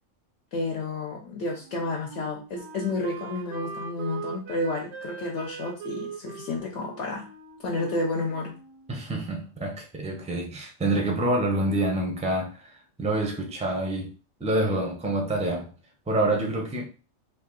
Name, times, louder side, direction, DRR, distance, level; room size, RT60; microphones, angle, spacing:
voice 1, 0.5-7.3 7.6-8.6, left 2 dB, 70° left, 1.0 m, -31 dB
Wind instrument woodwind instrument, 1.6-9.1, right 7 dB, 65° right, 0.8 m, -41 dB
voice 2, 8.9-14.1 14.4-15.7 16.1-16.8, right 1 dB, 10° right, 0.5 m, -27 dB
3.0 x 2.7 x 3.7 m
omnidirectional pair, 1.3 m